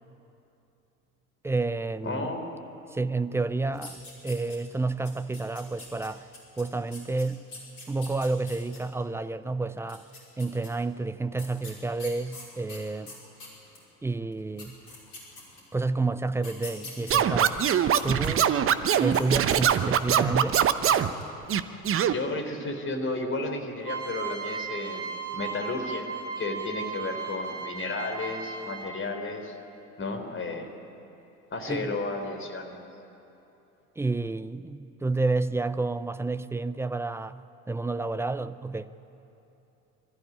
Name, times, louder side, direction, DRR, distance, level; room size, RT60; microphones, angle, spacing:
voice 1, 1.4-2.3 2.9-4.0 4.2-6.3 6.6-7.5 7.9-10.1 10.4-13.1 14.0-14.8 15.7-17.6 18.0-18.5 19.0-20.6 31.7-32.0 34.0-37.4 37.7-38.9, right 3 dB, 5° right, 0.4 m, -30 dB
voice 2, 2.0-2.5 22.1-26.1 26.4-29.6 30.0-30.7 31.5-32.8, left 2 dB, 25° left, 3.7 m, -33 dB
sound 1, 3.7-4.8 5.0-8.8 9.8-10.7 11.4-13.8 14.3-14.4 14.6-15.8 16.4-18.3 18.8-20.1 20.4-20.6 20.9-21.3, left 3 dB, 70° left, 5.7 m, -45 dB
Scratching (performance technique), 17.1-21.1 21.5-22.1, right 9 dB, 30° right, 0.9 m, -22 dB
sound 2, 23.8-29.1, right 5 dB, 80° right, 2.7 m, -36 dB
25.0 x 13.5 x 10.0 m
figure-of-eight pair, 70°, 45 cm